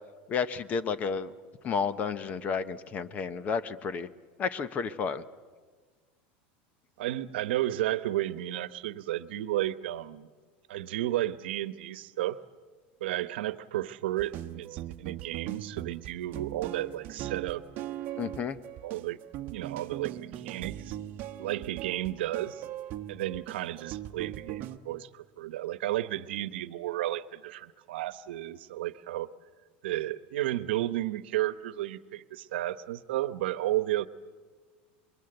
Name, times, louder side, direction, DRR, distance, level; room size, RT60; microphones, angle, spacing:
voice 1, 0.3-1.3 1.6-4.1 4.4-5.2 18.2-18.6, left 6 dB, 25° left, 14 dB, 0.9 m, -31 dB
voice 2, 7.0-10.3 10.7-12.4 13.0-17.6 18.8-19.2 19.5-21.0 21.4-22.6 23.1-29.3 29.8-34.1, right 14 dB, 90° right, 14 dB, 1.0 m, -33 dB
sound 1, 14.2-24.8, right 13 dB, 40° right, 1.1 m, -40 dB
28.0 x 23.0 x 7.9 m, 1.5 s
supercardioid pair, 155°, 6 cm